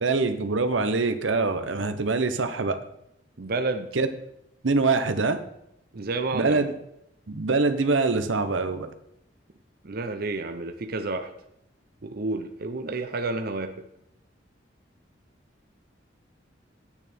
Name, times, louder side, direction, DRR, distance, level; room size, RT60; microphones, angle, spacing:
voice 1, 0.0-2.8 3.9-4.1 4.6-5.4 6.3-6.7 7.3-8.9, right 3 dB, 85° right, 9 dB, 0.9 m, -24 dB
voice 2, 3.4-3.9 5.9-6.7 9.8-11.3 12.0-13.8, right 3 dB, 55° right, 7 dB, 0.7 m, -30 dB
9.7 x 8.6 x 4.4 m, 0.79 s
head